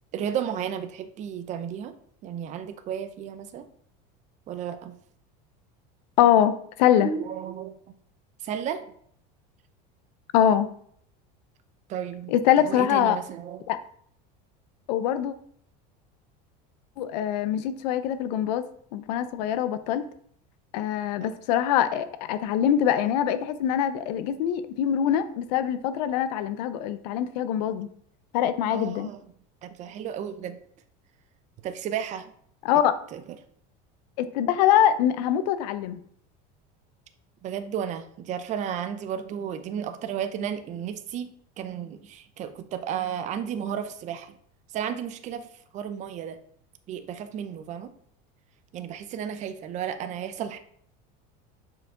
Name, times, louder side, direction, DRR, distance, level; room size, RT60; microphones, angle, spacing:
voice 1, 0.1-2.0 2.2-3.7 4.5-4.9 7.0-8.0 8.4-8.9 11.9-12.3 12.7-13.6 21.2-21.3 28.7-29.2 29.6-30.6 31.6-32.3 33.1-33.2 37.4-44.3 44.7-45.5 45.7-46.4 46.9-47.9 48.7-50.6, right 8 dB, 35° right, 9 dB, 0.7 m, -33 dB
voice 2, 6.2-7.1 10.3-10.7 12.3-13.2 13.7-13.8 14.9-15.3 17.0-20.1 20.7-27.9 28.3-29.1 32.6-33.0 34.2-36.0, left 10 dB, 85° left, 12 dB, 0.7 m, -23 dB
7.6 x 4.7 x 3.8 m, 0.63 s
cardioid pair, 150°, 20 cm